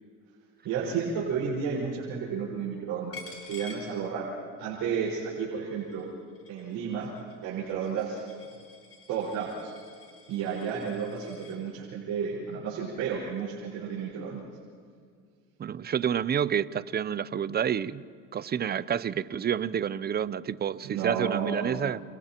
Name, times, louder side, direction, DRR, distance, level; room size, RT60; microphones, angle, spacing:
voice 1, 0.6-4.3 4.6-6.1 6.5-7.1 7.4-8.2 9.1-9.7 10.3-14.4 20.8-21.9, right 6 dB, 70° right, -7 dB, 5.2 m, -32 dB
Coin (dropping), 3.1-4.6 5.0-11.6, left 4 dB, 45° left, 5.3 m, -50 dB
voice 2, 15.6-18.0 18.3-22.0, right 8 dB, 30° right, 17 dB, 0.6 m, -29 dB
30.0 x 29.5 x 3.0 m, 2.1 s
supercardioid pair, 95°, 33 cm